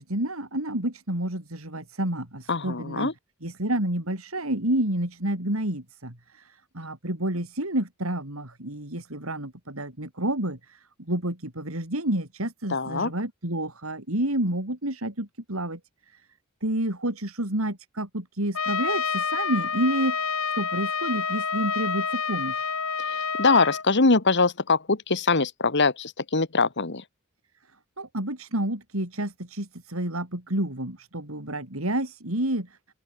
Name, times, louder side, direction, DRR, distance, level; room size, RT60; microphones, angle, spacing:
voice 1, 0.0-3.1 3.4-15.8 16.1-16.2 16.6-22.7 28.0-32.8, right 1 dB, 85° right, 5.9 m, -29 dB
voice 2, 2.5-3.1 12.7-13.1 23.4-27.0, left 3 dB, 55° left, 1.9 m, -23 dB
Trumpet, 18.5-23.8, left 5 dB, 85° left, 7.0 m, -28 dB
open air
head